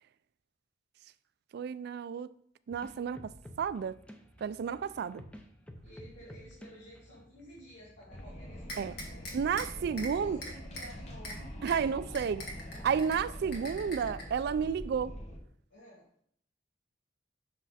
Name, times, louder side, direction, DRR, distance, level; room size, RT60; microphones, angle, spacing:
voice 1, 1.5-2.3 2.7-3.3 3.6-4.0 4.4-5.2 8.8-8.9 9.3-10.4 11.6-12.4 12.8-15.1, right 6 dB, 60° right, 0.3 m, -31 dB
sound 1, 2.7-8.4, equal, 5° left, 0.6 m, -52 dB
voice 2, 5.0-5.4 5.8-9.3 9.8-12.0 15.7-16.1, equal, 80° left, 2.0 m, -53 dB
Wind, 8.1-15.4, equal, 35° left, 1.1 m, -44 dB
sound 2, 8.7-9.6 10.0-10.1 10.4-10.9 11.2-11.3 11.7-11.8 12.1-13.2 13.5-14.2, left 1 dB, 60° left, 1.7 m, -41 dB
6.0 x 5.7 x 4.1 m
head